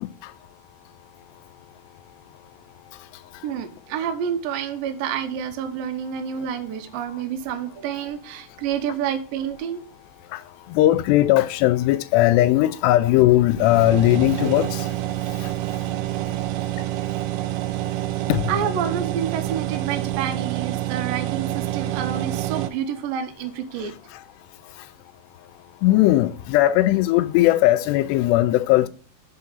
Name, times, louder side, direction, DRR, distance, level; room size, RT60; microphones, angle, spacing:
voice 1, 0.0-0.3 2.9-3.5 7.0-7.2 10.3-14.9 15.3-15.8 18.3-18.5 23.8-24.2 24.6-24.9 25.8-28.9, left 15 dB, 85° left, 2.7 m, -19 dB
voice 2, 3.4-9.8 18.5-23.9, right 8 dB, 70° right, 2.5 m, -28 dB
sound 1, 13.6-22.7, right 15 dB, 90° right, 2.8 m, -27 dB
7.5 x 4.5 x 7.0 m
omnidirectional pair, 4.8 m